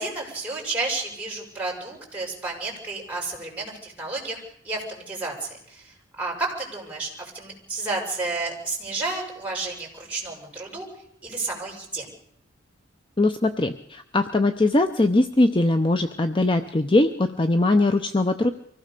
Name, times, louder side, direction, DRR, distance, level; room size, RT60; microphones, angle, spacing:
voice 1, 0.0-10.9 11.2-12.1, right 3 dB, 10° right, -2 dB, 6.5 m, -31 dB
voice 2, 13.2-18.5, left 2 dB, 25° left, 7 dB, 0.7 m, -21 dB
24.5 x 16.5 x 6.7 m, 0.71 s
head